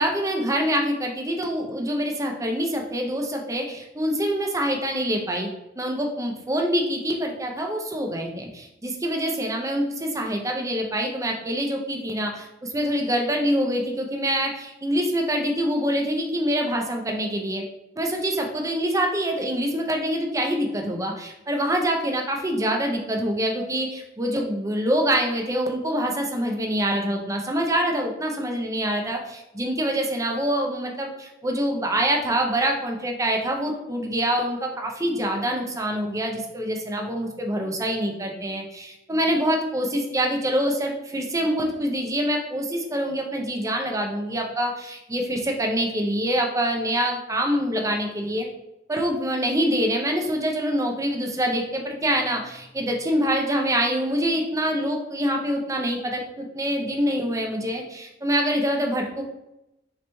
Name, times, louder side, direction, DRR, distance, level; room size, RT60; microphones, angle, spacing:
voice 1, 0.0-5.5 5.8-17.6 18.0-48.5 48.9-59.2, equal, 20° right, 2 dB, 0.6 m, -25 dB
3.9 x 3.0 x 3.3 m, 0.88 s
head